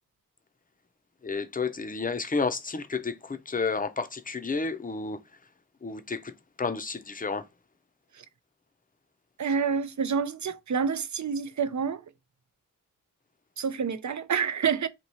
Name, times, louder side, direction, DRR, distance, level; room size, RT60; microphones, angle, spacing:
voice 1, 1.2-5.2 5.8-6.3 6.6-7.5, left 4 dB, 25° left, 0.5 m, -31 dB
voice 2, 9.4-12.0 13.6-14.9, right 6 dB, 60° right, 0.5 m, -28 dB
3.0 x 2.9 x 4.1 m
wide cardioid pair, 60°, 33 cm